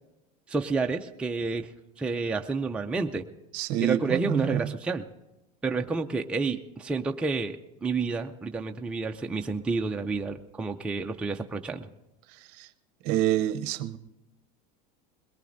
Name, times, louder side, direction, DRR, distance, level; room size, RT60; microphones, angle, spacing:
voice 1, 0.5-1.7 2.0-3.3 3.8-5.1 5.6-11.9, right 4 dB, 5° right, 4 dB, 0.4 m, -30 dB
voice 2, 3.5-4.7 12.6-12.7 13.0-14.0, right 12 dB, 60° right, 11 dB, 0.7 m, -27 dB
21.5 x 19.0 x 2.6 m, 0.99 s
supercardioid pair, 140°, 19 cm